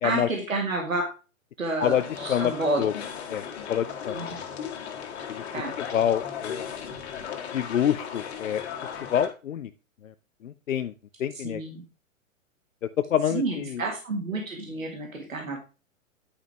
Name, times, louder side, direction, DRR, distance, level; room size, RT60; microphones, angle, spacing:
voice 1, 0.0-1.0 1.6-2.8 4.1-4.4 5.5-5.8 11.4-11.8 13.3-15.6, right 2 dB, 75° right, 1 dB, 2.0 m, -30 dB
sound 1, 1.8-9.3, left 7 dB, 50° left, 1.8 m, -36 dB
voice 2, 3.3-4.2 5.3-5.4 5.9-6.7 7.5-9.7 10.0-10.1 10.4-10.9 11.2-11.6 13.1-13.8, left 9 dB, 70° left, 11 dB, 0.6 m, -27 dB
9.8 x 5.3 x 3.4 m, 0.32 s
figure-of-eight pair, 110°, 40 cm